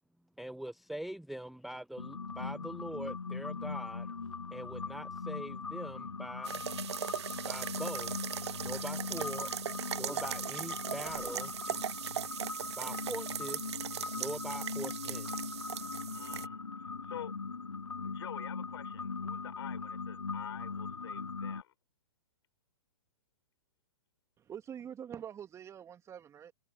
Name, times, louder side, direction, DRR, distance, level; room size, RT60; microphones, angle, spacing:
voice 1, 0.4-4.2 4.5-6.6 7.5-8.1 8.6-9.5 9.9-11.5 12.8-13.7 14.1-15.3, right 1 dB, ahead, 0.6 m, -43 dB
sound 1, 2.0-21.6, left 4 dB, 90° left, 0.6 m, -40 dB
sound 2, 6.5-16.5, right 10 dB, 60° right, 0.9 m, -39 dB
voice 2, 16.1-17.3 18.0-21.7, left 11 dB, 55° left, 6.4 m, -48 dB
voice 3, 24.4-26.5, right 9 dB, 15° right, 2.5 m, -45 dB
figure-of-eight pair, 120°, 16 cm